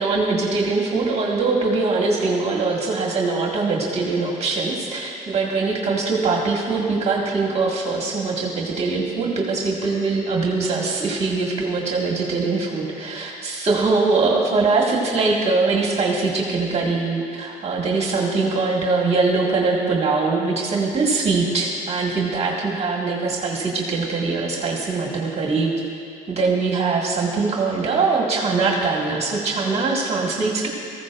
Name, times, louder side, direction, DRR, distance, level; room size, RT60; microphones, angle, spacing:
voice 1, 0.0-25.7 26.3-30.7, right 3 dB, 40° right, -2 dB, 1.8 m, -22 dB
17.5 x 15.0 x 2.5 m, 2.5 s
cardioid pair, 110°, 17 cm